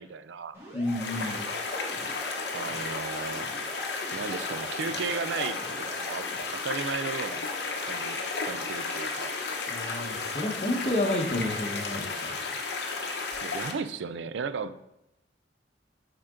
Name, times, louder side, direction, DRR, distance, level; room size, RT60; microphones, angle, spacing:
voice 1, 0.0-0.6 2.5-3.5 4.1-6.3 6.5-7.4 7.9-9.4 13.4-14.9, right 5 dB, 75° right, 13 dB, 0.4 m, -35 dB
sound 1, 0.5-6.4, equal, 15° right, 1.8 m, -44 dB
voice 2, 0.7-1.4 9.7-12.5, left 1 dB, 35° left, 2 dB, 1.0 m, -30 dB
sound 2, 0.8-13.7, left 4 dB, 60° left, 0.8 m, -33 dB
8.6 x 3.9 x 3.7 m, 0.88 s
head